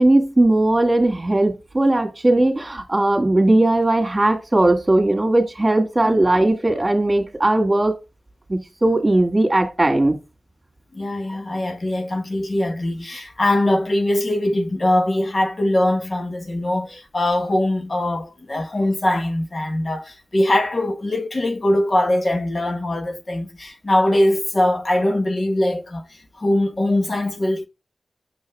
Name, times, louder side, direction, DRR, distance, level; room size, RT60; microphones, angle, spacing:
voice 1, 0.0-8.0 8.5-10.2, right 2 dB, 25° right, 2.3 m, -18 dB
voice 2, 10.9-27.7, left 1 dB, 50° left, 1.5 m, -22 dB
6.9 x 5.5 x 3.5 m
cardioid pair, 40°, 0 cm